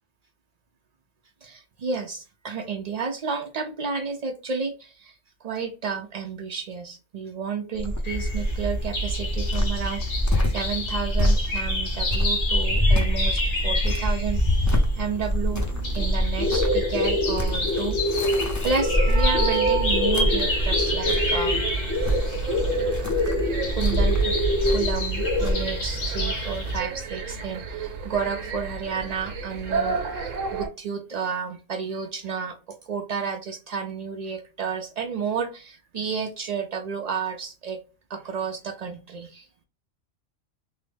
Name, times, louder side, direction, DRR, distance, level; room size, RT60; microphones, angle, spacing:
voice 1, 1.4-5.2 5.4-15.6 15.9-18.3 18.6-21.6 22.5-22.6 23.3-23.4 23.7-24.4 24.6-37.8 38.1-39.5, right 5 dB, 70° right, 3 dB, 0.3 m, -31 dB
Cricket, 7.7-25.5, left 1 dB, 25° left, 0.3 m, -26 dB
sound 1, 8.0-26.8, equal, 65° left, 1.3 m, -26 dB
sound 2, 18.2-30.7, right 5 dB, 90° right, 1.1 m, -33 dB
3.6 x 2.0 x 3.4 m, 0.33 s
omnidirectional pair, 1.3 m